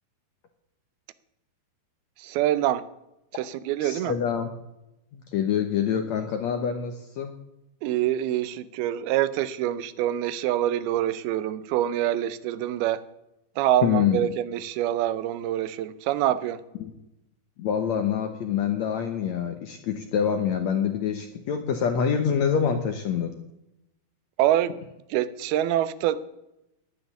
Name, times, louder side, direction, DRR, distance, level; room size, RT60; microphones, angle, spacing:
voice 1, 2.2-2.8 3.3-4.1 7.8-13.0 13.6-16.6 24.4-24.8 25.1-26.2, right 12 dB, 85° right, 15 dB, 2.7 m, -25 dB
voice 2, 3.8-4.5 5.1-7.3 13.8-14.2 16.8-16.9 17.6-23.3, left 8 dB, 70° left, 6 dB, 1.7 m, -26 dB
10.0 x 9.7 x 10.0 m, 0.90 s
omnidirectional pair, 4.4 m